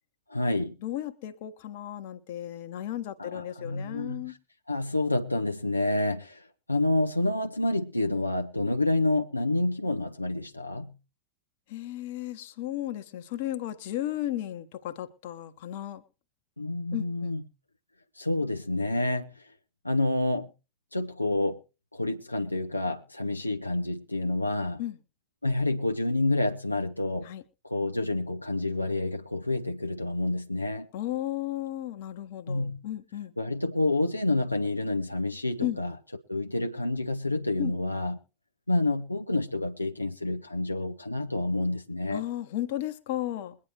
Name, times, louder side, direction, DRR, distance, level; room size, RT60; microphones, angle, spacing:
voice 1, 0.3-0.8 3.2-4.2 4.7-10.9 16.6-17.4 18.2-19.3 19.8-20.5 20.9-21.6 21.9-24.8 25.4-27.3 27.6-30.9 32.5-32.8 33.4-35.9 36.3-38.2 38.7-42.2, left 2 dB, 85° left, 0.7 m, -28 dB
voice 2, 0.8-4.3 11.7-16.0 16.9-17.3 24.8-25.0 27.2-27.4 30.9-33.3 35.6-35.8 37.6-37.8 42.1-43.6, left 13 dB, 50° left, 1.1 m, -34 dB
22.5 x 9.7 x 3.1 m
figure-of-eight pair, 90°, 0 cm